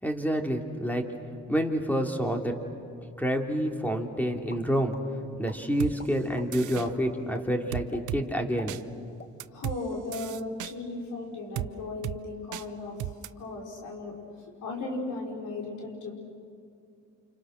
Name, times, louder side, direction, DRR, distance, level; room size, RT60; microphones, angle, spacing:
voice 1, 0.0-1.1 1.5-2.6 3.2-5.0 5.4-8.7, equal, 5° left, 3 dB, 2.9 m, -28 dB
sound 1, 4.5-5.0 5.4-5.6 6.0-6.5 6.8-6.9 7.3-7.5 7.9-8.1 8.4-9.6 9.9-10.0 10.4-10.8, left 4 dB, 35° left, 1.5 m, -46 dB
sound 2, 5.8-5.9 6.5-6.9 7.7-8.2 8.7-8.8 9.4-9.8 10.1-10.7 11.5-11.7 12.0-12.2 12.5-12.6 13.0-13.3, right 14 dB, 80° right, 0.7 m, -34 dB
voice 2, 9.5-16.1, left 2 dB, 80° left, 0 dB, 5.2 m, -36 dB
29.5 x 27.5 x 6.5 m, 2.5 s
cardioid pair, 90°, 30 cm